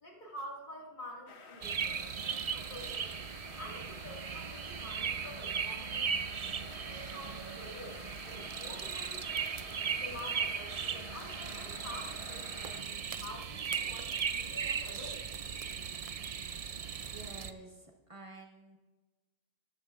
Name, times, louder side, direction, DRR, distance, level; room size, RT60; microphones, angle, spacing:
voice 1, 0.0-3.1 3.6-6.1 6.6-9.4 10.0-15.2, left 1 dB, 45° left, -2 dB, 2.3 m, -48 dB
sound 1, 1.3-12.8, left 5 dB, 80° left, 1.2 m, -50 dB
sound 2, 1.6-17.5, right 7 dB, 50° right, 0.4 m, -37 dB
voice 2, 16.9-18.8, right 2 dB, 30° right, 1 dB, 1.3 m, -50 dB
13.5 x 13.5 x 2.5 m, 1.2 s
omnidirectional pair, 1.1 m